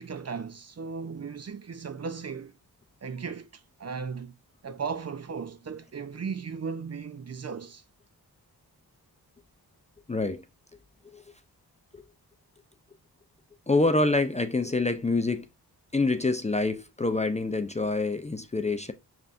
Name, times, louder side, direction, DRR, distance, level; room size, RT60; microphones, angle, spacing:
voice 1, 0.0-2.6 3.0-4.4 4.6-7.8, right 5 dB, 40° right, 0.6 m, -36 dB
voice 2, 10.1-10.4 11.0-11.2 11.9-12.0 13.7-15.5 15.9-18.9, left 3 dB, 20° left, 0.4 m, -26 dB
5.4 x 3.4 x 2.5 m
cardioid pair, 50°, 39 cm